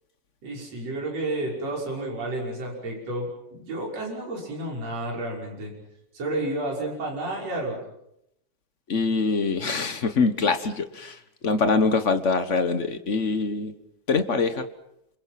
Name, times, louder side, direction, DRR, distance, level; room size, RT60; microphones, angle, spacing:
voice 1, 0.4-5.7 6.1-7.8, right 2 dB, 60° right, -2 dB, 7.1 m, -31 dB
voice 2, 8.9-11.2 11.4-13.7 14.1-14.7, left 4 dB, 65° left, 9 dB, 0.7 m, -24 dB
28.0 x 26.5 x 5.9 m, 0.80 s
omnidirectional pair, 3.3 m